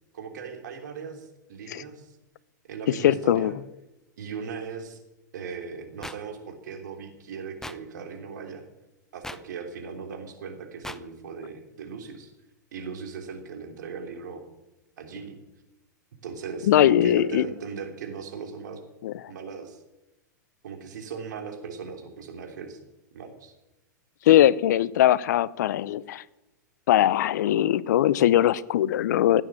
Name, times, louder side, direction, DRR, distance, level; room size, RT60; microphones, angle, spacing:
voice 1, 0.1-2.1 2.7-3.5 4.2-5.0 5.3-8.6 9.1-12.3 12.7-14.4 15.0-15.4 16.2-18.8 19.3-19.8 20.6-22.8 23.1-23.5, right 6 dB, 70° right, 4 dB, 3.2 m, -38 dB
voice 2, 3.0-3.5 16.7-17.5 19.0-19.1 24.3-26.2 26.9-29.4, left 12 dB, 65° left, 20 dB, 0.7 m, -20 dB
sound 1, 6.0-6.2 7.6-7.8 9.2-9.4 10.8-11.0, left 1 dB, 5° left, 0.7 m, -37 dB
16.5 x 9.2 x 7.4 m, 0.95 s
hypercardioid pair, 105°, 10 cm